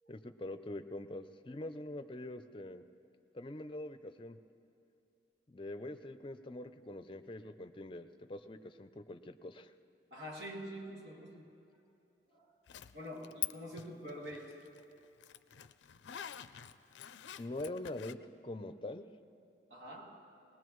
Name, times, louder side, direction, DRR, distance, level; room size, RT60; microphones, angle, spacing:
voice 1, 0.1-2.8 3.3-4.4 5.5-9.7 17.4-18.2 18.4-19.1, left 1 dB, 30° left, 9 dB, 0.5 m, -44 dB
voice 2, 10.1-11.5 12.3-12.5 12.9-14.6 19.7-20.3, equal, 80° right, -2 dB, 2.3 m, -46 dB
Zipper (clothing), 12.7-13.5 13.8-18.1, left 13 dB, 85° left, 0.4 m, -45 dB
20.5 x 19.5 x 3.1 m, 2.7 s
head